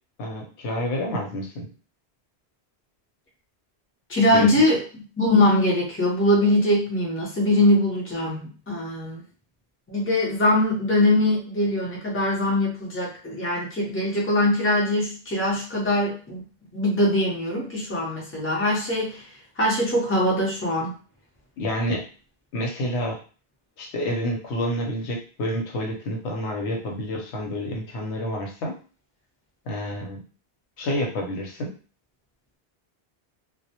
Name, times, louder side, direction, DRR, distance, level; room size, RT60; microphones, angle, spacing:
voice 1, 0.2-1.7 4.3-4.6 21.6-22.1 22.5-23.2 23.8-28.8 29.7-30.2 30.8-31.7, equal, 85° left, 0 dB, 0.9 m, -29 dB
voice 2, 4.1-9.2 9.9-16.4 16.7-19.2 19.6-20.9, left 1 dB, 15° left, -5 dB, 0.6 m, -22 dB
2.1 x 2.1 x 2.8 m, 0.38 s
omnidirectional pair, 1.1 m